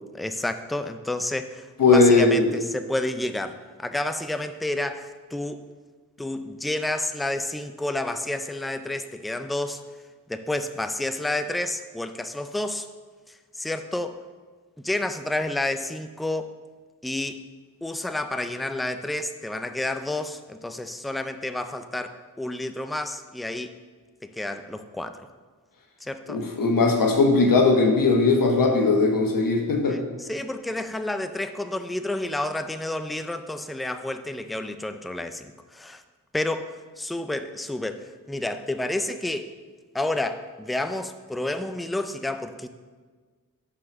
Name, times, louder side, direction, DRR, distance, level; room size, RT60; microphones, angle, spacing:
voice 1, 0.1-5.6 6.2-9.8 10.3-12.9 13.6-14.2 14.8-16.5 17.0-17.4 17.8-23.7 24.2-25.2 26.0-26.4 29.9-36.0 36.3-39.5 39.9-42.7, left 1 dB, ahead, 9 dB, 0.3 m, -30 dB
voice 2, 1.8-2.5 26.3-30.0, left 3 dB, 85° left, 2 dB, 1.2 m, -19 dB
5.9 x 5.0 x 5.9 m, 1.5 s
wide cardioid pair, 100°, 33 cm